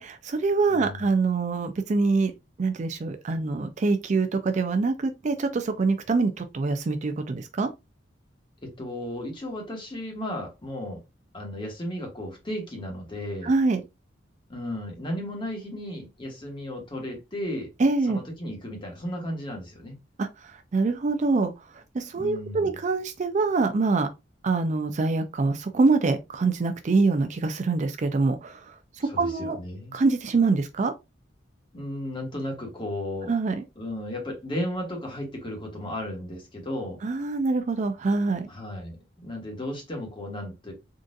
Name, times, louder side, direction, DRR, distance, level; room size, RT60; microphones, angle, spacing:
voice 1, 0.0-2.3 2.6-7.7 13.4-13.8 17.8-18.2 20.2-24.1 24.4-29.6 29.9-30.9 33.3-33.6 37.0-38.5, right 3 dB, 40° right, 0.4 m, -25 dB
voice 2, 0.7-1.1 8.6-11.0 11.3-13.5 14.5-17.7 18.1-20.0 22.1-22.8 29.0-29.9 31.7-33.3 33.8-37.0 38.5-40.7, left 1 dB, 25° left, 1.3 m, -34 dB
3.8 x 2.4 x 2.5 m
head